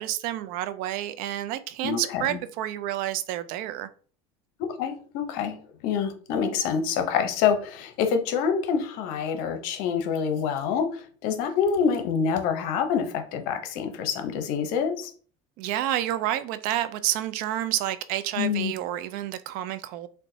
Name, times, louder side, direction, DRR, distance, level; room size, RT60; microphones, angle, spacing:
voice 1, 0.0-3.9 15.6-20.1, right 12 dB, 65° right, 12 dB, 0.4 m, -29 dB
voice 2, 1.8-2.4 4.6-15.1 18.4-18.7, left 6 dB, 70° left, 7 dB, 0.7 m, -26 dB
3.9 x 2.1 x 2.7 m, 0.43 s
supercardioid pair, 105°, 16 cm